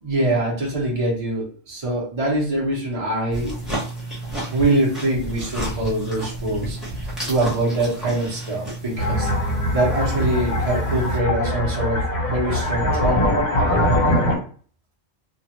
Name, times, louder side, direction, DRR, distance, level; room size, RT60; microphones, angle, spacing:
voice 1, 0.0-3.6 4.5-6.8 7.2-9.3 9.7-13.4, right 1 dB, 30° right, -2 dB, 1.0 m, -23 dB
sound 1, 3.3-11.2, right 1 dB, ahead, 0.9 m, -31 dB
sound 2, 9.0-14.4, equal, 40° left, 0.9 m, -22 dB
3.1 x 2.3 x 2.9 m, 0.43 s
omnidirectional pair, 1.3 m